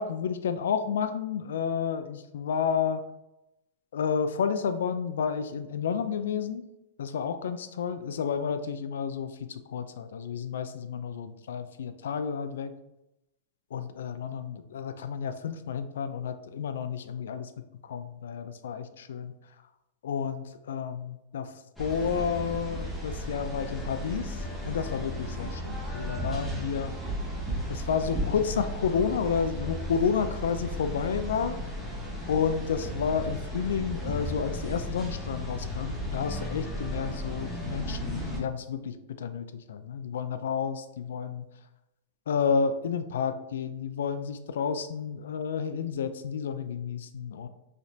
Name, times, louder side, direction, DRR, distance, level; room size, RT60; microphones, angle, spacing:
voice 1, 0.0-3.0 3.9-6.6 7.0-12.7 13.7-17.5 17.9-19.3 20.0-21.5 21.8-24.4 24.6-26.9 27.7-31.6 32.3-41.5 42.3-47.5, left 6 dB, 85° left, 10 dB, 0.3 m, -31 dB
sound 1, 21.8-38.4, equal, ahead, 0.7 m, -35 dB
3.2 x 2.8 x 2.7 m, 0.90 s
supercardioid pair, 150°, 0 cm